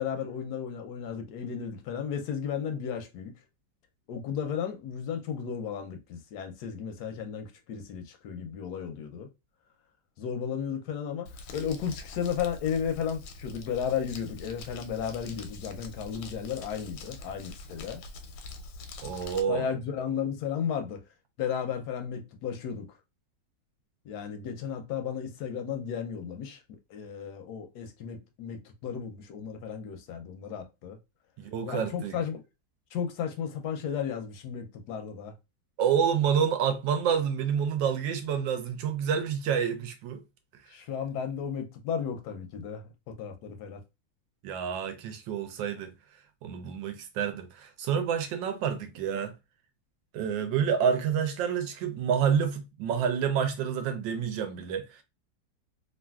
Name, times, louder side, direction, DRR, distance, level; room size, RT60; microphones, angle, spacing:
voice 1, 0.0-3.3 4.1-9.3 10.2-18.0 19.5-21.0 21.4-22.9 24.0-26.6 26.9-31.0 31.6-32.4 32.9-35.3 40.7-43.8, left 7 dB, 70° left, 0.9 m, -34 dB
Crumpling crinkling, 11.3-19.4, left 3 dB, 90° left, 1.3 m, -44 dB
voice 2, 19.0-19.7 31.4-32.2 35.8-40.2 44.4-45.9 46.4-49.3 50.1-55.0, right 7 dB, 80° right, 1.3 m, -28 dB
3.2 x 2.4 x 2.2 m
omnidirectional pair, 2.1 m